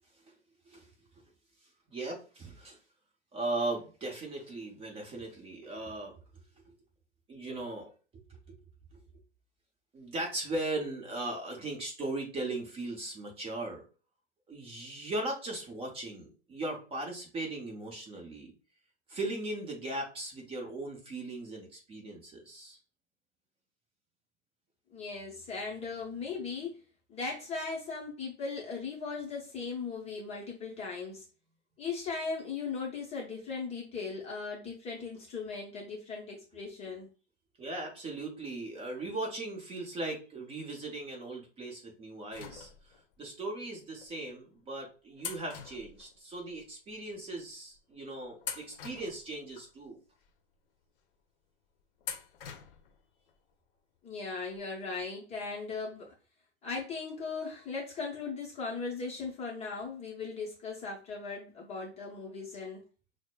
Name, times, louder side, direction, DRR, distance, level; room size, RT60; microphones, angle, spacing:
voice 1, 1.9-2.8 3.3-6.2 6.7-6.8 7.3-8.2 8.5-8.6 8.9-9.0 9.9-13.8 14.5-18.5 19.1-22.8 37.6-42.7 43.2-50.0, right 2 dB, 15° right, 0 dB, 0.9 m, -38 dB
voice 2, 24.9-26.8 27.1-31.2 31.8-37.1 54.0-56.1 56.6-62.8, left 4 dB, 20° left, -2 dB, 0.8 m, -38 dB
sound 1, 42.3-43.2 44.0-44.1 45.2-46.6 46.9-47.0 47.8-48.0 48.4-49.7 50.2-50.3 52.0-53.0 53.3-53.4 54.6-54.7 55.0-55.1, left 7 dB, 50° left, 0.8 m, -44 dB
6.2 x 2.1 x 2.2 m, 0.36 s
hypercardioid pair, 120°, 35 cm